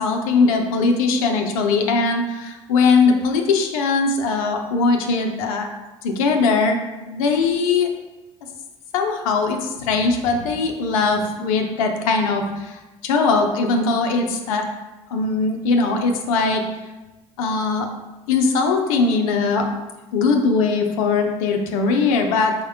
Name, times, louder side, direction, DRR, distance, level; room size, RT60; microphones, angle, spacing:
voice 1, 0.0-5.7 6.0-6.8 7.1-7.9 8.9-14.7 15.1-16.6 17.4-17.9 18.3-19.7 20.1-22.5, left 4 dB, 80° left, 4 dB, 0.5 m, -20 dB
4.7 x 2.2 x 3.4 m, 1.1 s
hypercardioid pair, 55°, 17 cm